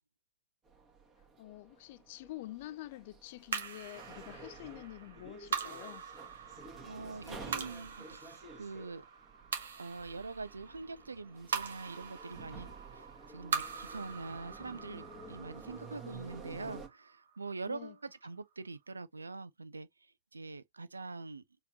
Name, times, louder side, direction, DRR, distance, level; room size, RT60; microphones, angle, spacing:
sound 1, 0.7-16.9, right 3 dB, 20° right, 1.7 m, -51 dB
voice 1, 1.4-6.0 17.7-17.9, left 16 dB, 45° left, 0.4 m, -47 dB
sound 2, 3.5-18.0, right 6 dB, 60° right, 1.1 m, -43 dB
voice 2, 6.8-9.0 9.8-12.7 13.0-19.9 20.3-21.4, right 3 dB, 75° right, 0.4 m, -44 dB
4.9 x 2.9 x 2.9 m
figure-of-eight pair, 105°, 0 cm